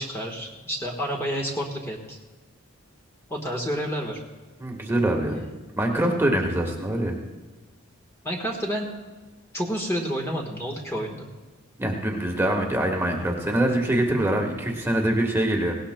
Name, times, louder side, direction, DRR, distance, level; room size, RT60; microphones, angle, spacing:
voice 1, 0.0-2.2 3.3-4.2 6.0-6.2 8.2-8.9 9.5-11.3, equal, 10° left, 0 dB, 1.2 m, -29 dB
voice 2, 4.6-5.4 5.8-7.1 11.8-15.8, right 1 dB, 10° right, 1 dB, 1.3 m, -24 dB
18.5 x 17.5 x 2.2 m, 1.3 s
head